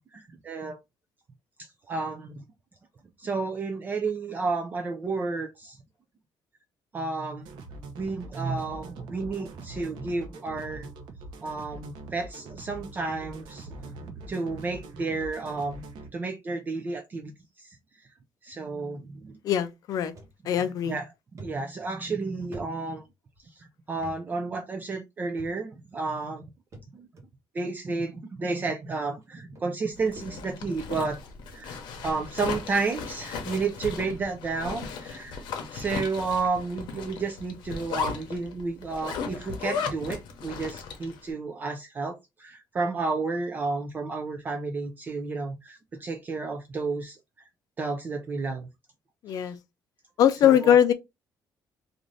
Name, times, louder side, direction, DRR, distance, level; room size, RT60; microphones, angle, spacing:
voice 1, 0.1-0.8 1.6-2.4 3.2-5.8 6.9-7.5 8.0-10.9 11.4-15.8 16.1-17.3 17.6-17.8 18.4-19.3 20.9-21.0 21.4-23.0 23.6-26.4 26.9-27.1 27.5-31.2 31.5-35.4 35.7-47.2 47.8-48.7 49.3-49.5 50.4-50.8, right 3 dB, 25° right, 0.3 m, -31 dB
sound 1, 7.4-16.1, right 2 dB, 80° right, 0.7 m, -44 dB
voice 2, 19.4-20.1 20.4-21.0 49.2-49.6 50.2-50.9, left 9 dB, 50° left, 0.4 m, -21 dB
sound 2, 20.2-20.3 20.8-20.9 21.4-23.4 24.0-24.2 24.5-24.6 25.4-25.8 26.7-27.3 28.1-28.2 29.2-29.3 29.6-30.7 31.2-31.5 32.2-32.3 32.8-32.9 33.2-33.3 33.7-33.9, right 1 dB, 40° right, 1.0 m, -48 dB
Zipper (clothing), 30.0-41.2, left 5 dB, 85° left, 0.8 m, -36 dB
2.5 x 2.5 x 3.1 m
cardioid pair, 180°, 8 cm